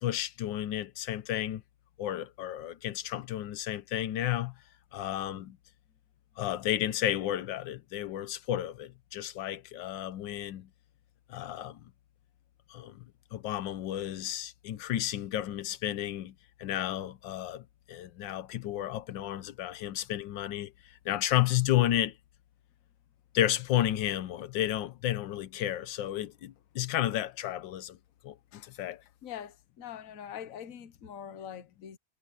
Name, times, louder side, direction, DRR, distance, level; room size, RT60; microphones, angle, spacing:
voice 1, 0.0-1.6 2.0-4.5 4.9-5.6 6.4-10.7 11.3-11.8 12.7-13.0 13.3-22.2 23.3-28.0 28.2-29.0, left 12 dB, 90° left, 1.5 m, -32 dB
voice 2, 29.2-32.0, left 9 dB, 50° left, 1.4 m, -43 dB
omnidirectional pair, 1.9 m